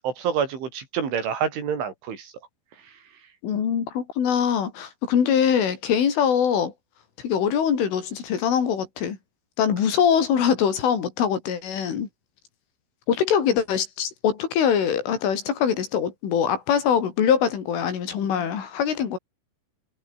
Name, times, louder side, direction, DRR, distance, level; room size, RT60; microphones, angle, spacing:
voice 1, 0.0-2.3, right 7 dB, 75° right, 6.9 m, -27 dB
voice 2, 3.4-6.7 7.2-9.2 9.6-12.1 13.1-19.2, left 8 dB, 80° left, 6.5 m, -23 dB
omnidirectional pair, 5.5 m